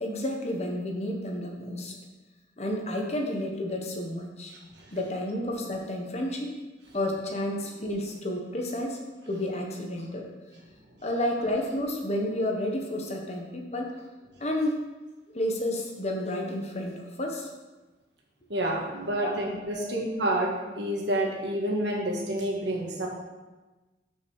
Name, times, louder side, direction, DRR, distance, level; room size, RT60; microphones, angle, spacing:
voice 1, 0.0-1.9 2.6-4.5 4.9-6.6 6.9-9.0 9.3-10.3 11.0-13.9 14.4-14.8 15.3-17.5 19.2-19.3 19.7-19.9, left 1 dB, 35° left, 1 dB, 1.2 m, -31 dB
voice 2, 18.5-23.1, right 1 dB, 70° right, -1 dB, 1.7 m, -29 dB
6.5 x 5.6 x 6.5 m, 1.2 s
head